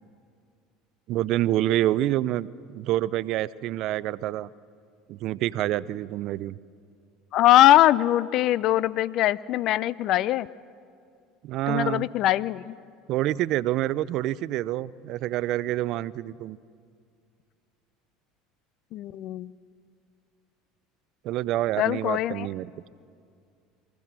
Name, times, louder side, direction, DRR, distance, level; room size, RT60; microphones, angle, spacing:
voice 1, 1.1-4.5 5.1-6.6 11.4-12.1 13.1-16.6 21.2-22.7, right 14 dB, 60° right, 19 dB, 0.5 m, -27 dB
voice 2, 7.3-10.5 11.7-12.8 18.9-19.5 21.8-22.5, left 14 dB, 60° left, 20 dB, 0.6 m, -21 dB
24.0 x 15.5 x 7.5 m, 2.3 s
hypercardioid pair, 85°, 0 cm